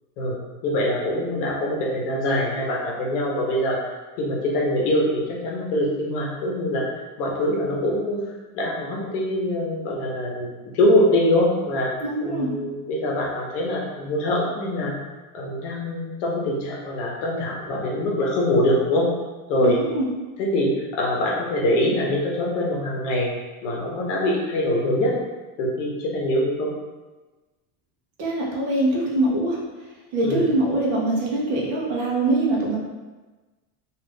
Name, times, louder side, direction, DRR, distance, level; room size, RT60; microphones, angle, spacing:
voice 1, 0.2-3.8 4.2-6.8 7.2-8.2 8.5-10.5 10.7-11.9 12.2-14.9 15.3-19.1 19.5-19.8 20.4-23.3 23.6-25.2 25.6-26.7 30.2-30.4, left 1 dB, 65° left, -2 dB, 0.8 m, -23 dB
voice 2, 12.0-12.5 19.6-20.1 28.2-29.6 30.1-32.8, right 2 dB, 40° right, -3 dB, 0.6 m, -23 dB
2.4 x 2.4 x 3.4 m, 1.2 s
supercardioid pair, 165°, 40 cm